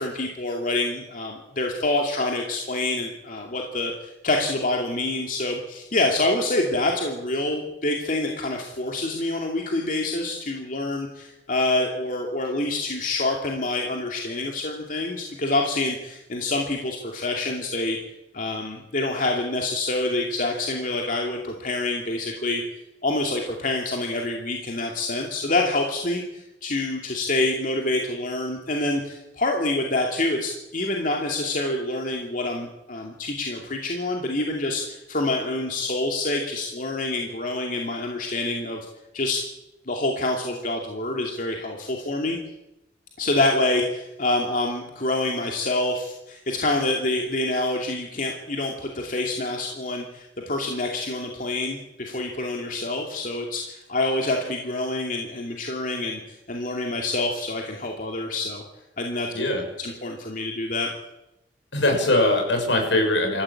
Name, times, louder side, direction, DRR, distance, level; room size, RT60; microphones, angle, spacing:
voice 1, 0.0-18.0 18.3-22.6 23.0-38.8 39.1-39.4 39.9-42.4 43.2-56.2 56.5-58.6 59.0-59.3 59.8-60.9, left 2 dB, 45° left, 1 dB, 2.6 m, -26 dB
voice 2, 61.7-63.4, left 1 dB, 75° left, 3 dB, 6.5 m, -21 dB
26.5 x 14.5 x 8.6 m, 0.93 s
head